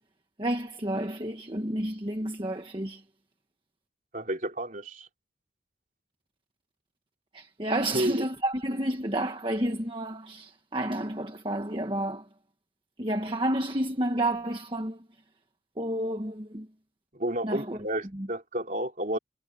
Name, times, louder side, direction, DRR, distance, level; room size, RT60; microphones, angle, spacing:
voice 1, 0.4-3.0 7.3-12.3 13.0-15.0 15.8-16.7 17.4-17.8 18.1-18.3, right 1 dB, 25° right, 1.5 m, -30 dB
voice 2, 4.1-5.1 7.9-8.2 17.1-19.2, right 1 dB, 40° right, 3.4 m, -31 dB
head